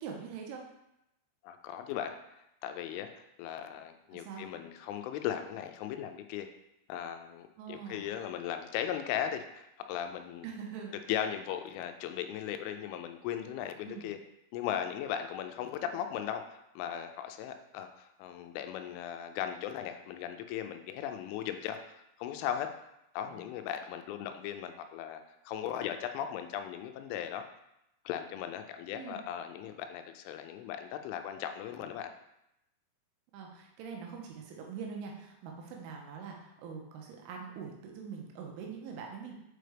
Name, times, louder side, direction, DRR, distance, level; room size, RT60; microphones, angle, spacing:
voice 1, 0.0-0.6 4.1-4.5 7.6-8.1 10.4-10.9 13.9-14.1 23.3-23.4 28.9-29.2 33.3-39.3, right 6 dB, 85° right, 0 dB, 3.3 m, -43 dB
voice 2, 1.4-2.2 2.6-3.1 3.4-6.5 6.9-10.5 11.1-14.2 14.5-16.4 16.8-22.7 23.1-27.5 28.1-32.1, left 10 dB, 85° left, 7 dB, 2.9 m, -37 dB
7.7 x 4.6 x 3.4 m, 0.84 s
omnidirectional pair, 5.6 m